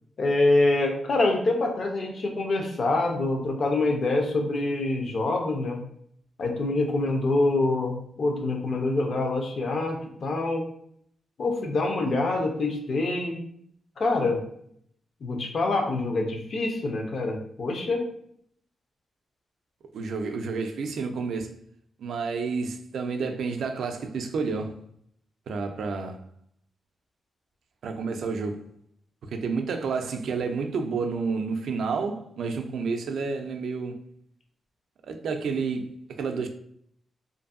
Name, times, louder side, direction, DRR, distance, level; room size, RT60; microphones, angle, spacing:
voice 1, 0.2-5.8 6.4-10.7 11.4-13.4 14.0-14.4 15.2-18.0, left 2 dB, 50° left, 0.6 m, -25 dB
voice 2, 19.9-21.5 22.0-24.8 25.5-26.2 27.8-28.7 29.2-34.0 35.1-36.5, right 4 dB, 75° right, 0.3 m, -30 dB
2.6 x 2.5 x 2.4 m
wide cardioid pair, 130°, 0 cm